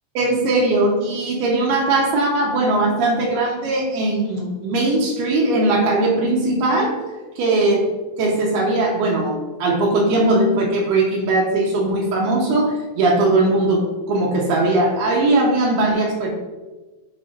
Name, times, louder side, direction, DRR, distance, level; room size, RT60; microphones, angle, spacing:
voice 1, 0.1-7.0 7.4-7.8 8.2-16.3, right 2 dB, 70° right, -2 dB, 2.6 m, -19 dB
14.0 x 4.9 x 2.6 m, 1.2 s
omnidirectional pair, 5.5 m